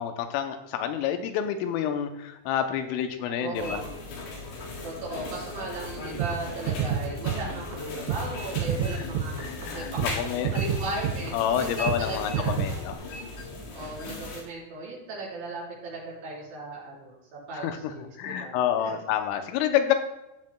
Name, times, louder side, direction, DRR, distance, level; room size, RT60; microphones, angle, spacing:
voice 1, 0.0-3.8 9.0-9.1 9.4-10.6 11.3-13.0 17.5-17.9 18.2-19.9, left 9 dB, 85° left, 7 dB, 3.2 m, -28 dB
voice 2, 3.4-4.1 4.8-9.3 9.7-12.6 13.7-18.9, right 3 dB, 65° right, -6 dB, 6.2 m, -37 dB
sound 1, 3.5-14.4, left 2 dB, 65° left, 3.6 m, -37 dB
sound 2, 5.8-5.9 6.2-6.4 6.7-7.8 8.1-8.3 8.6-9.7 10.0-10.2 10.4-11.6 11.9-12.1 12.3-13.0, right 8 dB, 85° right, 3.1 m, -29 dB
17.0 x 7.3 x 2.2 m, 0.94 s
omnidirectional pair, 5.7 m